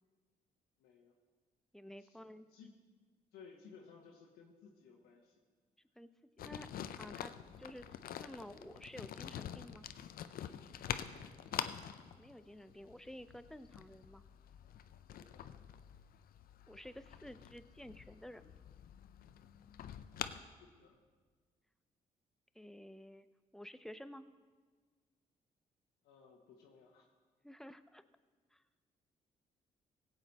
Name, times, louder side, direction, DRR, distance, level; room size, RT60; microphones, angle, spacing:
voice 1, 0.8-1.1 2.0-2.7 3.3-5.3 11.1-11.3 15.1-15.4 20.6-21.0 26.0-27.1, left 5 dB, 85° left, -1 dB, 1.2 m, -59 dB
voice 2, 1.7-2.5 6.0-6.1 6.4-6.7 7.0-7.3 7.6-7.9 8.2-9.9 12.2-14.2 16.7-18.6 22.5-23.3 23.5-24.3 27.4-28.0 28.5-28.6, equal, 5° left, 12 dB, 0.6 m, -51 dB
sound 1, 6.4-20.4, left 9 dB, 65° left, 0.5 m, -46 dB
16.5 x 8.1 x 4.1 m, 1.5 s
supercardioid pair, 60°, 16 cm